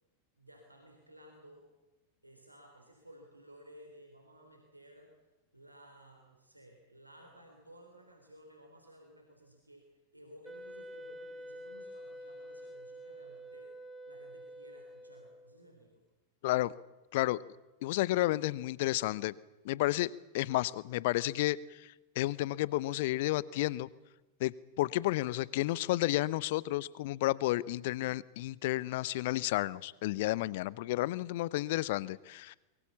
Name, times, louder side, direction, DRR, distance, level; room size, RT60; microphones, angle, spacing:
voice 1, 0.4-1.7 2.2-5.1 5.5-13.7 14.1-16.0, equal, 85° right, 2 dB, 3.8 m, -56 dB
Wind instrument woodwind instrument, 10.4-15.6, equal, 10° right, 2.1 m, -48 dB
voice 2, 17.8-19.3 19.6-20.1 20.3-23.9 24.4-24.5 24.8-32.6, left 17 dB, 50° left, 22 dB, 0.8 m, -31 dB
23.5 x 22.5 x 7.1 m, 1.1 s
figure-of-eight pair, 90°, 0 cm